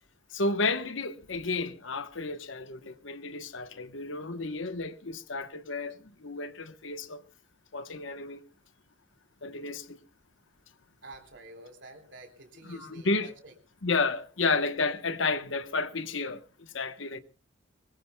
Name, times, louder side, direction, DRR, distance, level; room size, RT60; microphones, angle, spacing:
voice 1, 0.3-7.2 7.7-8.4 9.4-10.0 12.7-13.3 13.8-17.2, left 3 dB, 70° left, 1.1 m, -32 dB
voice 2, 11.0-13.5, right 2 dB, 60° right, 3.7 m, -49 dB
23.5 x 20.5 x 2.3 m
head